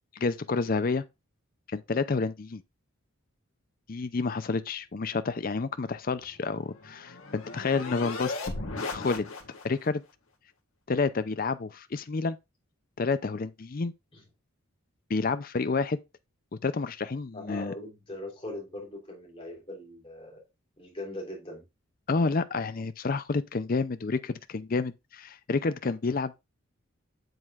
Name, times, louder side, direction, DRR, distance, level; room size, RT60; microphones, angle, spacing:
voice 1, 0.1-1.0 1.7-2.6 3.9-8.5 8.9-9.2 9.6-10.0 10.9-12.4 13.0-13.9 15.1-16.0 16.6-17.7 22.1-26.3, left 4 dB, 40° left, 0.5 m, -29 dB
sound 1, 6.2-9.9, left 3 dB, 75° left, 1.8 m, -37 dB
voice 2, 17.3-20.4 20.8-21.6, left 1 dB, 25° left, 3.4 m, -40 dB
7.9 x 7.4 x 2.4 m
head